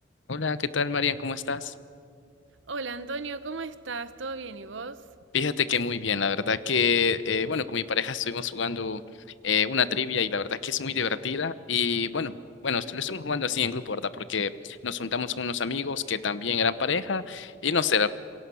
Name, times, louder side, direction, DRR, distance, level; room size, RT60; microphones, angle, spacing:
voice 1, 0.3-1.7 5.3-9.0 9.4-12.3 12.6-18.1, left 5 dB, 70° left, 15 dB, 0.9 m, -27 dB
voice 2, 2.7-5.0, right 3 dB, 70° right, 14 dB, 1.0 m, -35 dB
27.0 x 22.5 x 7.1 m, 2.3 s
head